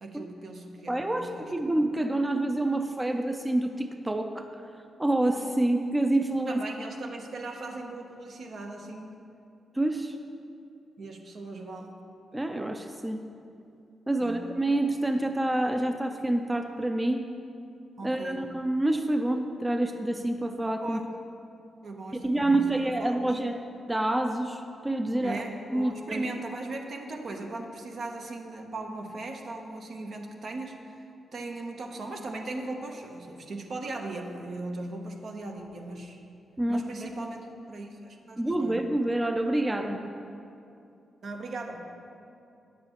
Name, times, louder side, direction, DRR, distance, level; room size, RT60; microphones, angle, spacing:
voice 1, 0.0-1.7 6.5-9.2 11.0-11.9 14.2-14.5 18.0-18.5 20.8-21.1 21.8-23.2 25.2-31.1 31.3-36.2 36.7-38.8 41.2-41.9, right 2 dB, 65° right, 2 dB, 0.8 m, -38 dB
voice 2, 0.9-4.5 5.0-6.6 9.8-10.2 12.3-13.2 14.1-17.3 18.0-21.0 22.2-23.6 23.9-25.4 25.7-26.3 36.6-36.9 38.4-40.0, right 1 dB, 20° right, 6 dB, 0.5 m, -27 dB
9.2 x 7.5 x 3.0 m, 2.6 s
supercardioid pair, 50°, 0 cm